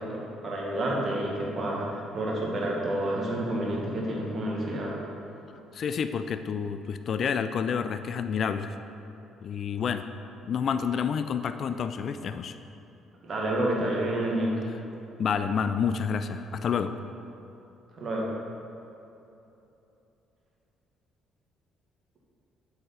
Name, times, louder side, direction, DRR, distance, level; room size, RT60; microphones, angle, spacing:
voice 1, 0.0-5.0 13.2-14.6 18.0-18.3, right 1 dB, 45° right, -3 dB, 1.8 m, -29 dB
voice 2, 5.7-8.8 9.4-10.1 10.5-12.5 15.2-16.9, left 6 dB, 50° left, 10 dB, 0.3 m, -29 dB
7.7 x 4.8 x 5.7 m, 2.9 s
figure-of-eight pair, 45°, 0 cm